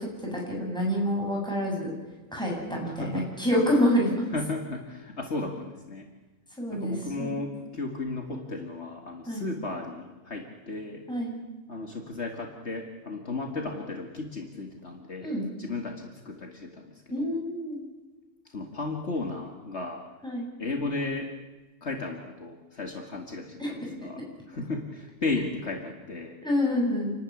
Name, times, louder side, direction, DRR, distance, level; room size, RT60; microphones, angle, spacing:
voice 1, 0.0-1.9 2.3-4.3 6.6-7.4 9.3-9.4 11.1-11.4 15.2-15.5 17.1-17.8 20.2-20.5 23.6-23.7 26.4-27.1, equal, 5° left, -3 dB, 8.0 m, -27 dB
voice 2, 2.8-3.3 4.3-6.1 6.7-11.0 11.7-15.3 15.6-17.3 18.5-20.0 20.6-21.3 21.8-26.4, left 3 dB, 60° left, 2 dB, 2.3 m, -34 dB
29.0 x 13.0 x 9.8 m, 1.2 s
omnidirectional pair, 1.3 m